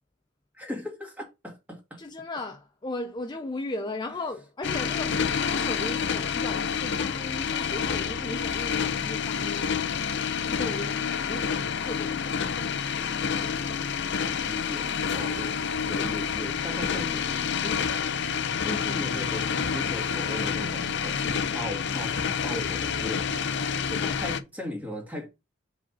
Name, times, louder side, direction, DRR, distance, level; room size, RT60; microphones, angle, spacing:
voice 1, 0.5-2.0 14.4-17.8 18.6-23.3 24.2-25.3, left 1 dB, 10° right, 2.1 m, -38 dB
voice 2, 2.0-9.8 10.4-12.5 22.5-22.9 23.9-24.2, left 2 dB, 20° left, 0.6 m, -37 dB
sound 1, 4.6-24.4, left 7 dB, 65° left, 0.6 m, -28 dB
5.0 x 4.1 x 5.5 m
head